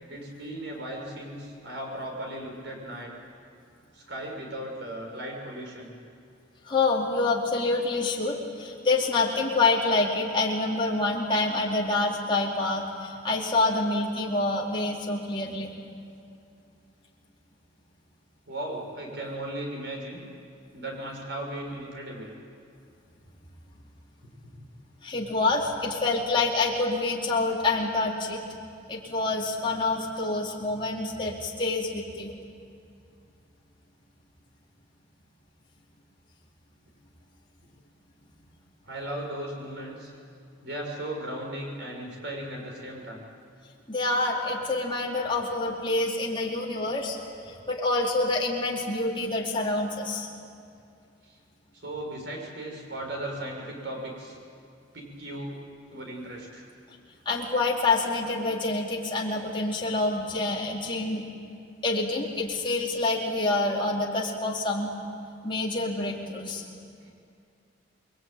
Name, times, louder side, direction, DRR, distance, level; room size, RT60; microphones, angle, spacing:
voice 1, 0.1-3.1 3.9-5.9 18.5-20.2 20.7-22.3 24.4-24.7 38.8-40.1 40.6-43.2 51.3-51.4 51.7-54.4 54.9-55.6 55.9-56.7 67.0-67.1, right 1 dB, 65° right, 1 dB, 6.7 m, -37 dB
voice 2, 6.7-15.7 25.0-32.3 43.9-47.2 47.5-50.3 57.2-61.2 61.8-64.9 65.4-66.6, left 2 dB, 25° left, -4 dB, 4.4 m, -27 dB
28.5 x 22.5 x 9.4 m, 2.4 s
head